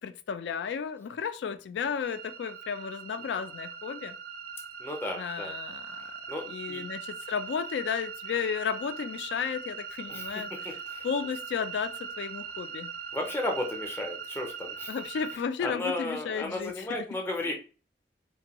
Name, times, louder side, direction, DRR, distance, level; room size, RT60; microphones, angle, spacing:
voice 1, 0.0-4.2 5.2-6.1 6.5-10.5 11.0-12.9 14.9-17.0, left 6 dB, 80° left, 0.3 m, -33 dB
sound 1, 2.0-15.4, right 6 dB, 55° right, 0.3 m, -41 dB
voice 2, 4.8-5.5 6.3-6.8 10.1-11.1 13.1-14.9 15.3-17.5, left 2 dB, 15° left, 0.5 m, -34 dB
2.6 x 2.2 x 2.8 m
head